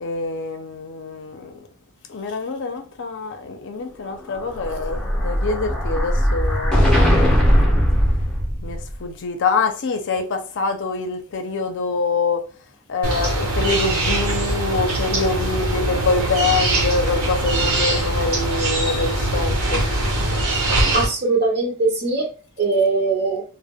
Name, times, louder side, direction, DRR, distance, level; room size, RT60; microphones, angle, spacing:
voice 1, 0.0-1.6 2.1-7.8 8.6-12.4 12.9-19.8, left 4 dB, 55° left, 0.5 m, -25 dB
Explosion, 4.3-8.9, equal, 5° left, 0.5 m, -19 dB
sound 1, 13.0-21.1, right 1 dB, 75° right, 0.9 m, -22 dB
voice 2, 20.9-22.3 22.6-23.4, right 3 dB, 45° right, 0.6 m, -20 dB
2.2 x 2.1 x 3.4 m
head